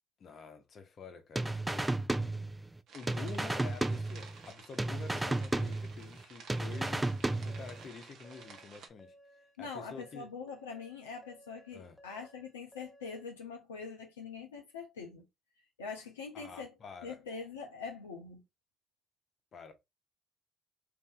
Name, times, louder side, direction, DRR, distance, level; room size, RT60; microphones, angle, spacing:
voice 1, 0.2-1.9 2.9-9.1 9.6-10.3 11.7-12.0 16.3-17.2 19.5-19.7, left 5 dB, 50° left, 0.8 m, -48 dB
sound 1, 1.4-2.8 3.1-4.5 4.8-6.2 6.5-7.8, right 2 dB, 15° right, 0.4 m, -33 dB
sound 2, 2.9-8.9, right 5 dB, 60° right, 0.7 m, -54 dB
sound 3, 6.7-13.3, equal, 5° left, 0.8 m, -60 dB
voice 2, 9.6-15.2 15.8-16.7 17.0-18.4, left 5 dB, 85° left, 0.5 m, -43 dB
2.6 x 2.6 x 3.7 m
figure-of-eight pair, 45°, 0 cm